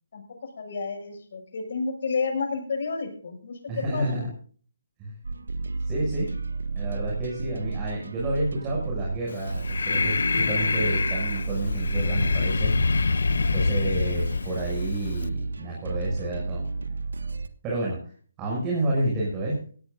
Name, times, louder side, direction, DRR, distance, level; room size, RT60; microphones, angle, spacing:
voice 1, 0.6-4.0, left 4 dB, 55° left, 5 dB, 6.6 m, -30 dB
voice 2, 3.7-4.3 5.0-5.1 5.8-6.3 6.7-10.1 10.5-12.7 13.5-16.6 17.6-18.0 18.4-19.6, right 1 dB, 20° right, -4 dB, 6.5 m, -29 dB
sound 1, 5.2-17.5, right 3 dB, 85° right, 1.6 m, -32 dB
Breathing, 9.3-15.3, left 4 dB, 75° left, 1.0 m, -26 dB
17.5 x 17.0 x 2.5 m, 0.43 s
hypercardioid pair, 160°, 0 cm